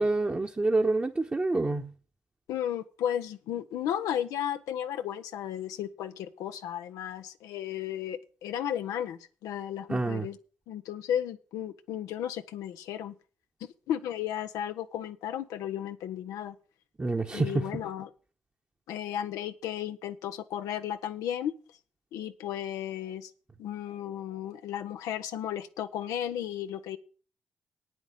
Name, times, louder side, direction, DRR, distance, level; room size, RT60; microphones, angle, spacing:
voice 1, 0.0-1.9 9.9-10.2 17.0-17.7, right 2 dB, 25° right, 1.2 m, -27 dB
voice 2, 2.5-10.4 10.7-13.1 13.9-16.6 17.3-18.1 18.9-21.5 22.1-23.3 23.6-27.0, left 10 dB, 90° left, 0.9 m, -34 dB
9.2 x 8.0 x 7.2 m
supercardioid pair, 55°, 6 cm